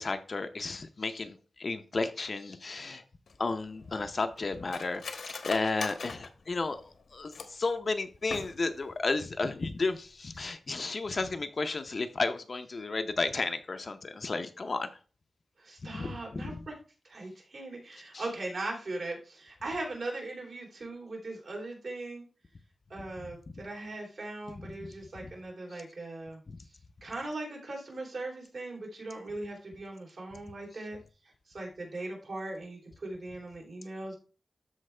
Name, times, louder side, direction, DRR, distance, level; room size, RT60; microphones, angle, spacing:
voice 1, 0.0-3.0 3.4-14.9 15.8-16.6 18.1-18.3 23.2-23.6 24.5-24.7 25.2-25.3 26.5-26.6, left 3 dB, 40° left, 8 dB, 0.6 m, -33 dB
Cutlery silverware, 3.3-7.7 8.2-8.9 9.2-9.3 9.6-10.0 10.3-10.5, left 4 dB, 75° left, 1.1 m, -42 dB
voice 2, 15.6-16.7 17.0-22.2 22.9-26.4 27.0-31.0 31.5-34.2, right 2 dB, 60° right, -1 dB, 3.2 m, -39 dB
13.0 x 4.6 x 3.3 m, 0.35 s
wide cardioid pair, 170°, 0 cm